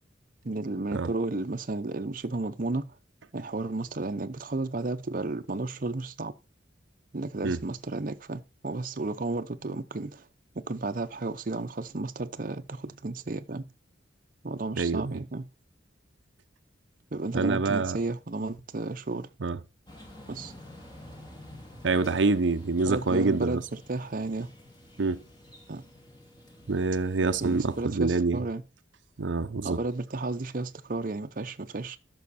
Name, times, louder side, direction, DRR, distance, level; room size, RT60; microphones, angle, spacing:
voice 1, 0.4-2.9 3.3-6.3 7.1-10.3 10.5-13.7 14.4-15.5 17.1-19.3 20.3-20.5 22.8-24.5 25.7-25.8 27.4-28.6 29.6-32.0, right 2 dB, 50° right, 0.7 m, -33 dB
voice 2, 14.8-15.2 17.3-18.0 19.4-19.6 21.8-23.6 25.0-25.2 26.7-28.4 29.2-29.8, right 3 dB, 85° right, 0.7 m, -26 dB
sound 1, 19.9-27.8, left 1 dB, 25° left, 2.4 m, -50 dB
13.5 x 6.4 x 4.2 m
head